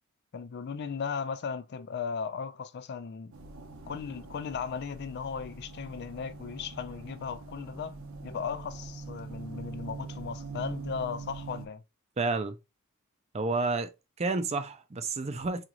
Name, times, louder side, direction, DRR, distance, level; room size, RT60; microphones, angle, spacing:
voice 1, 0.3-3.3 3.9-7.9 8.2-11.8, left 6 dB, 50° left, 0.4 m, -36 dB
sound 1, 3.3-11.7, right 3 dB, 80° right, 0.7 m, -43 dB
voice 2, 12.2-12.6 13.3-13.9 14.2-15.6, right 3 dB, 30° right, 0.5 m, -30 dB
4.9 x 2.5 x 2.9 m
head